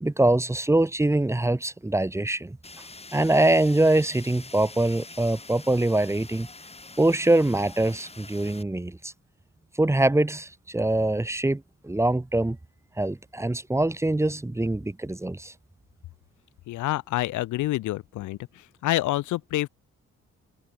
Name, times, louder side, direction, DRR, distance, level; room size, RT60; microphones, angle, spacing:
voice 1, 0.0-2.6 3.1-6.5 7.0-9.1 9.8-12.6 13.0-15.5, right 2 dB, 10° right, 1.3 m, -23 dB
Fire, 2.6-8.6, left 3 dB, 20° left, 3.8 m, -45 dB
voice 2, 16.7-18.4 18.8-19.7, left 16 dB, 75° left, 0.7 m, -27 dB
cardioid pair, 90°, 30 cm